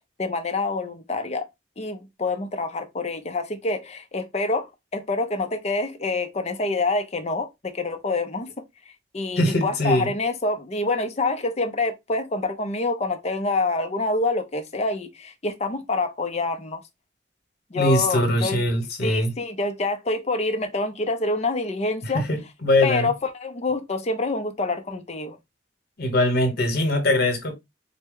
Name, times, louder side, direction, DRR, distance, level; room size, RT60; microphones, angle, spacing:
voice 1, 0.2-1.5 1.8-8.5 9.1-16.8 17.7-18.6 19.0-22.3 22.8-25.4, left 3 dB, 35° left, 0.6 m, -26 dB
voice 2, 9.4-10.1 17.7-19.3 22.0-23.1 26.0-27.5, left 1 dB, 55° left, 1.2 m, -22 dB
4.2 x 2.3 x 3.6 m
head